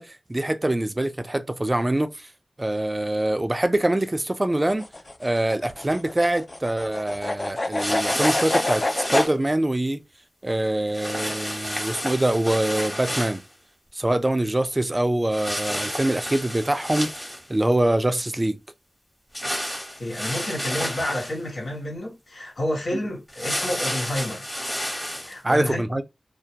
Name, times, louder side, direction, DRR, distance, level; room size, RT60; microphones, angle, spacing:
voice 1, 0.0-2.3 2.6-4.8 5.2-10.0 10.4-13.4 13.9-17.1 17.5-18.6 22.9-23.0 25.4-26.0, right 1 dB, 25° right, 0.4 m, -24 dB
sound 1, 4.6-9.3, left 2 dB, 40° left, 0.4 m, -27 dB
sound 2, 7.8-9.3 10.9-13.4 15.3-17.6 19.3-21.4 23.3-25.3, equal, 15° left, 1.0 m, -30 dB
voice 2, 20.0-24.5 25.2-26.0, left 1 dB, 75° left, 1.1 m, -30 dB
2.3 x 2.2 x 2.7 m
wide cardioid pair, 60°, 0 cm